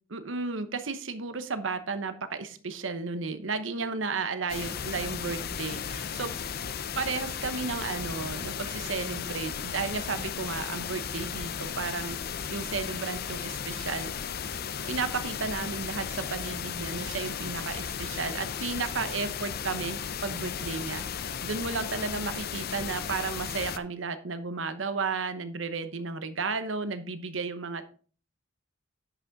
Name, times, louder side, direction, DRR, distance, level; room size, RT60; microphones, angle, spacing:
voice 1, 0.1-6.3 7.0-14.3 14.9-21.0 21.4-27.9, right 4 dB, 75° right, 11 dB, 1.0 m, -33 dB
sound 1, 4.5-23.8, left 7 dB, 55° left, 0.6 m, -35 dB
10.5 x 6.1 x 4.0 m, 0.41 s
head